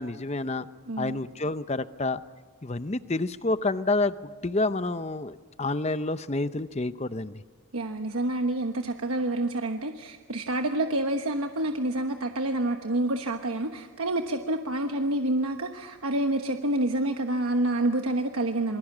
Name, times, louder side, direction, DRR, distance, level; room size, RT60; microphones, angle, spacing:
voice 1, 0.0-0.7 1.0-2.2 2.6-4.1 4.4-7.3, left 2 dB, 30° left, 13 dB, 0.7 m, -28 dB
voice 2, 0.9-1.2 7.7-18.8, right 1 dB, 85° right, 5 dB, 1.2 m, -28 dB
28.0 x 21.5 x 7.3 m, 1.4 s
head